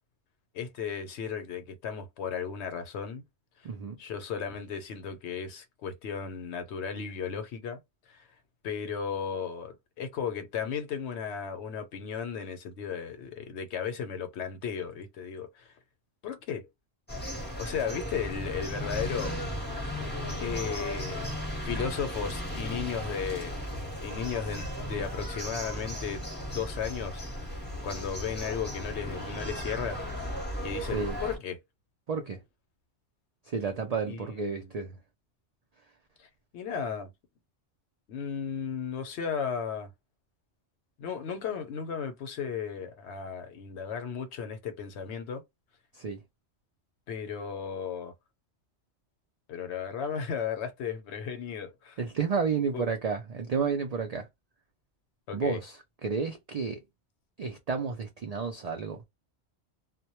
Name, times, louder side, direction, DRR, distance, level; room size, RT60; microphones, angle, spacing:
voice 1, 0.5-3.2 4.0-7.8 8.1-8.2 8.6-15.7 16.2-16.7 17.6-19.3 20.4-21.3 21.6-23.5 24.0-26.2 26.5-27.2 27.8-30.0 30.6-31.6 34.1-34.7 36.2-37.1 38.1-39.9 41.0-45.4 47.1-48.1 49.5-52.0 52.7-52.8 55.3-55.6, left 7 dB, 70° left, 0.8 m, -35 dB
voice 2, 3.6-4.0 30.9-31.2 32.1-32.4 33.4-35.0 45.9-46.2 52.0-54.3 55.3-56.8 57.4-59.0, right 5 dB, 85° right, 0.3 m, -31 dB
sound 1, 17.1-31.4, equal, 10° left, 0.7 m, -36 dB
2.2 x 2.1 x 2.9 m
omnidirectional pair, 1.2 m